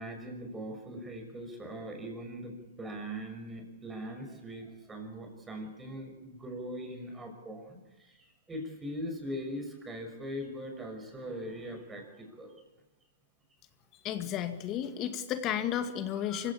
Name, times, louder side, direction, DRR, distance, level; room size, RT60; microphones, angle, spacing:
voice 1, 0.0-12.6, equal, 15° right, 4 dB, 6.1 m, -41 dB
voice 2, 14.0-16.5, left 10 dB, 35° left, 8 dB, 2.1 m, -33 dB
24.5 x 16.0 x 8.7 m, 1.1 s
hypercardioid pair, 120°, 0 cm